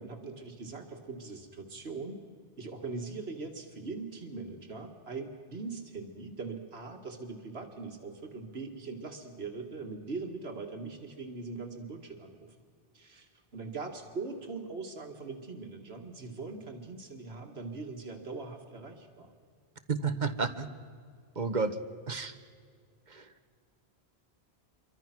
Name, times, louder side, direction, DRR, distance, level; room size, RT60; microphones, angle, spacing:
voice 1, 0.0-2.2 2.6-12.6 12.9-19.3, right 3 dB, 85° right, 3 dB, 2.3 m, -41 dB
voice 2, 19.9-20.7 21.3-21.8 22.1-22.3 23.1-23.3, right 4 dB, 45° right, 10 dB, 1.3 m, -31 dB
27.5 x 24.0 x 6.1 m, 2.1 s
omnidirectional pair, 1.1 m